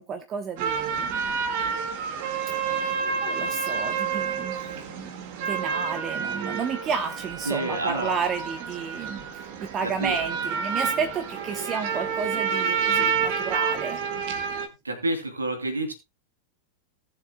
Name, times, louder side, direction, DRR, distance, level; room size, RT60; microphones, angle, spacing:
voice 1, 0.0-1.4 2.6-2.8 3.2-14.0, right 6 dB, 30° right, 8 dB, 1.1 m, -32 dB
sound 1, 0.6-14.7, right 6 dB, 45° right, 1.9 m, -29 dB
voice 2, 7.4-8.1 9.8-10.2 14.8-15.9, right 1 dB, 80° right, 5 dB, 2.8 m, -28 dB
19.0 x 7.3 x 2.3 m, 0.26 s
figure-of-eight pair, 90°, 0 cm